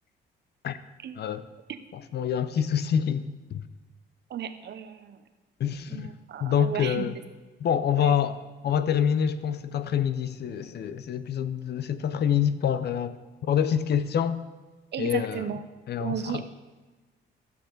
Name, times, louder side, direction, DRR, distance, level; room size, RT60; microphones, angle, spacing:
voice 1, 1.9-3.6 5.6-6.1 6.4-7.2 7.6-13.2 13.4-14.4 15.0-15.5 15.9-16.4, left 8 dB, 55° left, 13 dB, 0.5 m, -26 dB
voice 2, 4.3-5.2 5.9-7.1 8.0-8.2 14.9-15.6 16.0-16.4, right 9 dB, 60° right, 10 dB, 0.8 m, -34 dB
14.0 x 6.7 x 3.9 m, 1.3 s
cardioid pair, 90°, 20 cm